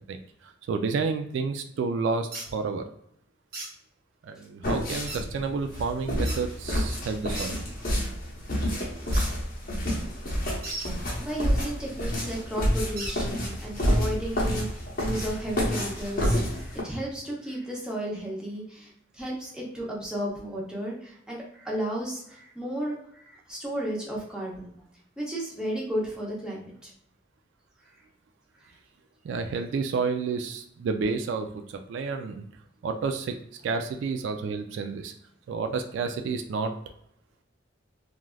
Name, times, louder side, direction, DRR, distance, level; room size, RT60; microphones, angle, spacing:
voice 1, 0.7-2.8 4.2-7.6 29.2-32.5 32.8-33.3 33.6-35.1 35.5-36.7, right 4 dB, 75° right, 5 dB, 0.3 m, -30 dB
sound 1, 2.3-2.5 3.5-3.7 5.1-5.2 6.3-6.4 7.3-7.5 9.1-9.3 10.6-10.9 13.0-13.2, right 2 dB, 50° right, 0.9 m, -35 dB
sound 2, 4.6-16.8, equal, 50° left, 0.9 m, -29 dB
voice 2, 11.2-14.7 15.0-24.7 25.2-26.9, right 1 dB, 5° right, -4 dB, 0.7 m, -33 dB
3.2 x 2.4 x 2.3 m, 0.72 s
head